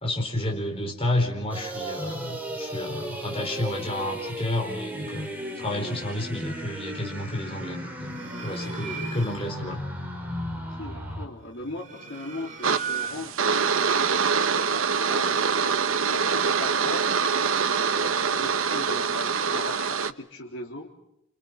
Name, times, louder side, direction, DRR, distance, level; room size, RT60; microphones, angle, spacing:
voice 1, 0.0-5.3 5.5-8.2 8.4-9.8, left 1 dB, 25° left, 2 dB, 4.2 m, -30 dB
sound 1, 1.5-11.3, equal, 10° right, 5.2 m, -35 dB
sound 2, 8.0-9.6 11.5-13.5, right 6 dB, 40° right, 4.5 m, -37 dB
voice 2, 10.5-13.7 14.4-17.2 17.8-20.9, left 1 dB, 60° left, -2 dB, 3.7 m, -39 dB
sound 3, 12.6-20.1, right 6 dB, 70° right, 1.1 m, -24 dB
30.0 x 27.5 x 6.0 m, 0.81 s
head